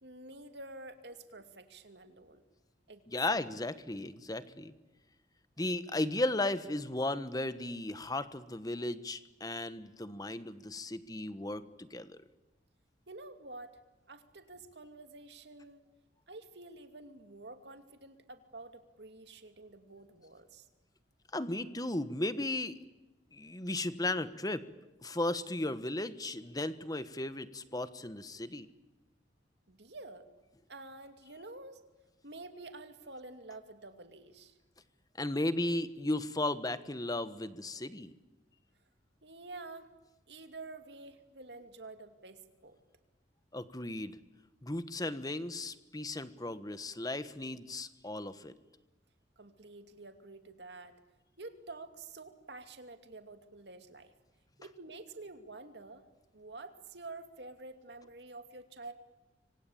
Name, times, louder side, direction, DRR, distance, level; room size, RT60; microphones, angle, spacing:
voice 1, 0.0-2.4 2.9-3.4 13.1-13.8 14.1-15.8 16.3-20.7 29.7-30.3 30.7-31.8 32.2-34.6 39.2-39.9 40.3-42.8 49.4-51.0 51.4-54.1 54.6-56.0 56.3-58.9, right 2 dB, 65° right, 7 dB, 2.7 m, -49 dB
voice 2, 3.1-4.7 5.6-12.2 21.3-22.8 23.3-24.6 25.0-28.7 35.2-38.1 43.5-44.2 44.6-48.5, left 2 dB, 20° left, 13 dB, 1.3 m, -35 dB
26.0 x 25.0 x 8.7 m, 1.1 s
head